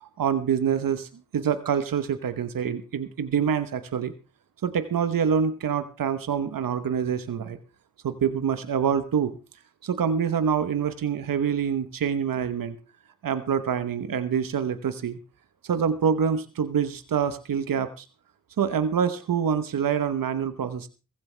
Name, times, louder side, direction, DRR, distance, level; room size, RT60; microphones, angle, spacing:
voice 1, 0.0-1.1 1.3-4.1 4.6-7.6 8.0-9.3 9.8-12.8 13.2-15.2 15.6-18.0 18.6-20.9, right 7 dB, 90° right, 11 dB, 1.0 m, -26 dB
16.0 x 15.5 x 3.3 m, 0.31 s
cardioid pair, 40°, 33 cm